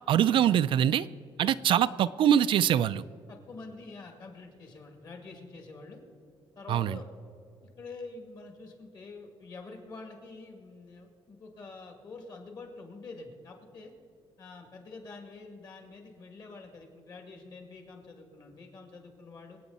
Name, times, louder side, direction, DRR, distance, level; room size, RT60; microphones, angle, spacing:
voice 1, 0.1-1.1 1.4-3.0 6.7-7.0, right 10 dB, 60° right, 14 dB, 0.4 m, -23 dB
voice 2, 3.3-6.0 6.6-7.1 7.8-13.9 14.4-19.6, left 3 dB, 45° left, 3 dB, 2.3 m, -46 dB
25.5 x 8.7 x 4.1 m, 2.5 s
cardioid pair, 165°, 10 cm